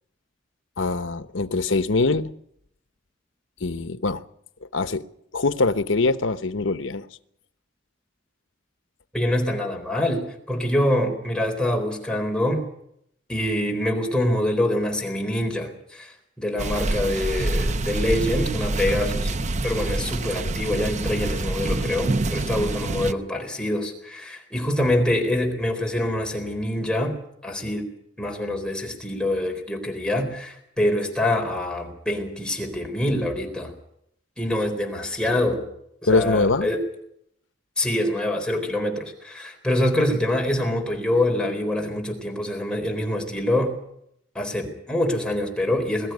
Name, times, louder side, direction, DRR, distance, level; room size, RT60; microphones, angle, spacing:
voice 1, 0.8-2.3 3.6-4.2 4.7-5.0 5.3-7.1 36.1-36.7, left 3 dB, 85° left, 1.0 m, -23 dB
voice 2, 9.1-12.6 13.3-19.3 19.6-27.1 27.4-27.8 28.2-33.7 34.4-35.6 36.0-36.8 37.8-43.7 44.3-46.1, left 1 dB, 5° left, 4.1 m, -25 dB
sound 1, 16.6-23.1, right 2 dB, 40° right, 0.7 m, -26 dB
22.0 x 13.5 x 9.4 m
head